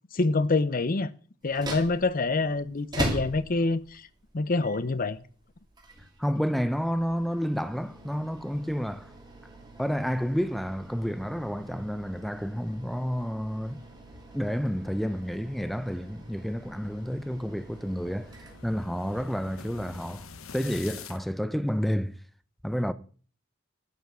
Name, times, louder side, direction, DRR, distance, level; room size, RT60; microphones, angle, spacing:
voice 1, 0.1-1.1 1.4-4.1 4.3-5.2, left 3 dB, 40° left, 0.6 m, -26 dB
sound 1, 1.4-19.2, right 1 dB, 20° right, 2.7 m, -42 dB
voice 2, 6.2-9.1 9.8-13.9 14.3-18.3 18.6-20.3 20.5-22.2 22.6-22.9, equal, ahead, 0.5 m, -30 dB
sound 2, 13.6-21.2, left 5 dB, 80° left, 1.2 m, -48 dB
11.5 x 5.8 x 7.7 m
head